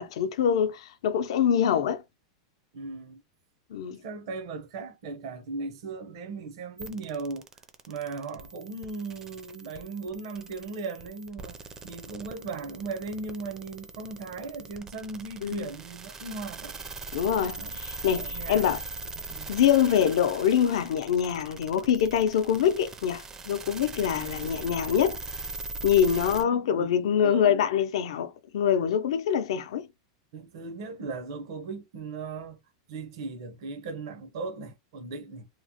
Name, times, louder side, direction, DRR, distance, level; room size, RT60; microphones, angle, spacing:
voice 1, 0.0-2.0 3.7-4.0 15.4-15.7 17.1-18.8 19.5-25.2 25.8-29.9, left 8 dB, 75° left, 0.5 m, -25 dB
voice 2, 2.7-3.2 4.0-7.6 7.9-11.6 11.8-16.8 17.3-17.8 18.1-18.8 19.3-19.5 24.1-24.5 26.1-27.7 30.3-32.6 32.9-35.5, right 4 dB, 65° right, 0.7 m, -38 dB
sound 1, 6.8-26.4, right 3 dB, 15° right, 0.4 m, -41 dB
2.9 x 2.0 x 2.7 m
supercardioid pair, 155°, 3 cm